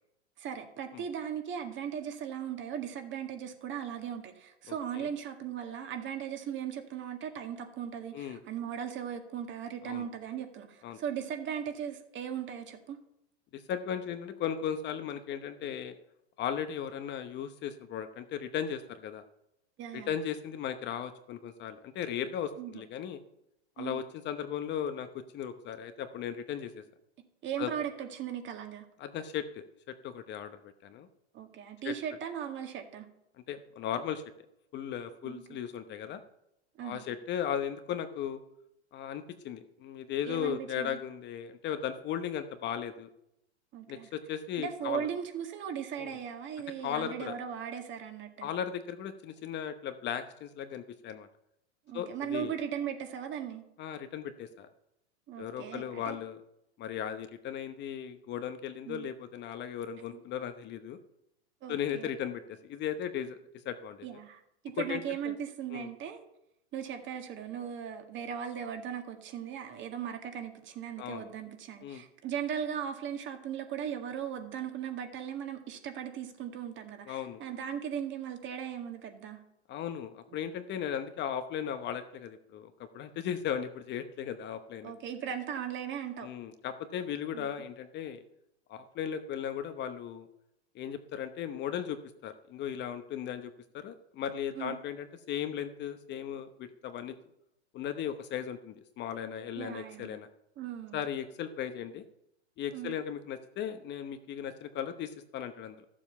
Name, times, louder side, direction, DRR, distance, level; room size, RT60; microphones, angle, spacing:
voice 1, 0.4-13.0 19.8-20.1 22.6-22.9 23.8-24.0 27.4-28.8 31.3-33.1 35.2-35.6 36.8-37.0 40.2-41.0 43.7-44.1 44.6-48.5 51.9-53.6 55.3-56.2 58.9-59.1 61.6-62.1 64.0-66.3 66.7-79.4 84.8-86.3 87.3-87.5 94.6-94.8 99.6-100.1 100.6-101.0 102.7-103.0, right 8 dB, 35° right, 5 dB, 1.9 m, -38 dB
voice 2, 4.7-5.1 8.1-8.4 9.8-10.1 10.8-11.0 13.5-15.9 16.4-19.2 19.9-23.2 23.8-26.8 27.6-27.7 29.0-31.1 31.8-31.9 33.5-34.2 34.7-36.2 36.8-38.4 38.9-43.1 43.9-45.1 46.0-46.2 46.8-47.4 48.4-51.3 51.9-52.5 53.8-54.7 55.4-56.4 56.8-61.0 61.7-63.4 63.6-64.0 64.8-65.3 65.7-65.9 71.0-71.3 71.8-72.0 77.1-77.4 79.7-84.9 86.2-88.2 88.7-90.3 90.7-97.1 97.7-100.3 100.9-102.0 102.6-105.9, left 9 dB, 30° left, 9 dB, 0.9 m, -37 dB
13.5 x 7.4 x 5.7 m, 0.81 s
hypercardioid pair, 110°, 34 cm